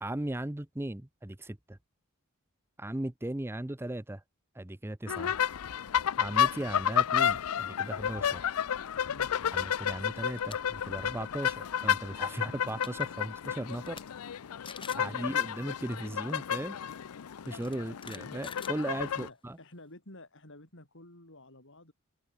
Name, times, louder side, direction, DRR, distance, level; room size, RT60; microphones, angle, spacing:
voice 1, 0.0-1.8 2.8-4.2 4.5-5.4 6.2-8.4 9.5-14.0 14.9-16.8 17.5-19.6, right 1 dB, 10° right, 0.6 m, -37 dB
trompettiste dans la rue Paris, 5.1-19.3, left 9 dB, 85° left, 0.5 m, -31 dB
sound 1, 10.2-10.6 11.0-11.2 12.4-12.5 12.7-13.0 13.6-14.0 14.3-14.4 14.6-15.1 16.3-16.4 17.5-19.3, left 6 dB, 25° left, 3.1 m, -47 dB
voice 2, 19.0-21.9, left 1 dB, 60° left, 7.1 m, -52 dB
head